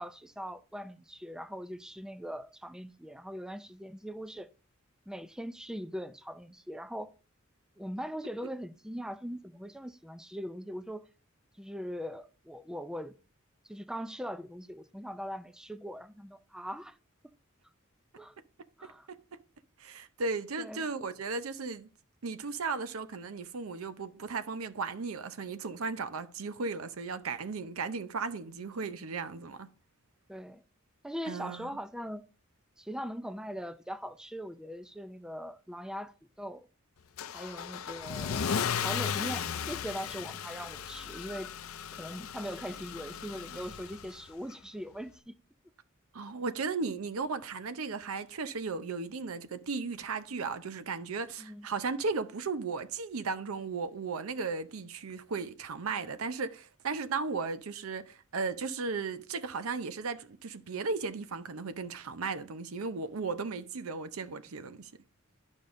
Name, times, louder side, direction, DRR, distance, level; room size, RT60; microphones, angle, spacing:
voice 1, 0.0-4.5 5.1-7.1 7.8-11.1 11.6-13.1 13.6-17.0 18.2-18.4 18.8-19.1 20.6-20.9 30.3-30.6 31.0-32.2 32.8-36.7 37.3-41.5 41.9-45.4 46.2-46.3 51.4-51.7, equal, 5° right, 0.4 m, -41 dB
voice 2, 18.8-19.4 19.8-21.9 22.2-29.7 31.3-31.7 46.1-64.9, right 4 dB, 85° right, 0.7 m, -36 dB
Car / Engine starting / Accelerating revving vroom, 37.2-44.3, left 7 dB, 80° left, 0.5 m, -36 dB
11.5 x 5.3 x 2.6 m
head